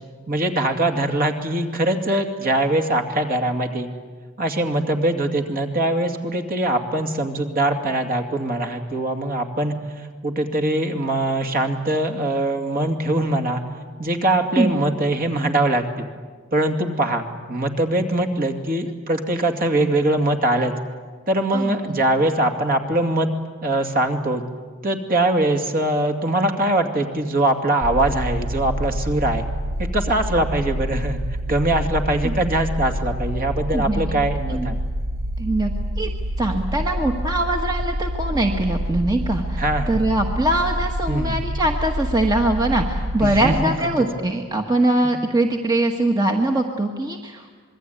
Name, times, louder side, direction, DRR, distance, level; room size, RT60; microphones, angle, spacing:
voice 1, 0.3-3.9 4.4-13.6 14.0-16.0 16.5-20.7 21.3-23.3 23.6-24.4 24.8-29.4 29.8-31.2 31.5-34.8 39.6-40.0 41.1-41.4 43.2-44.1 45.0-45.2, right 1 dB, 40° right, 5 dB, 2.6 m, -22 dB
sound 1, 27.8-43.7, right 1 dB, 85° right, 1.4 m, -27 dB
voice 2, 35.4-35.7 36.0-36.1 36.4-47.5, right 1 dB, 20° right, 2 dB, 1.4 m, -22 dB
26.5 x 22.0 x 9.5 m, 1.5 s
head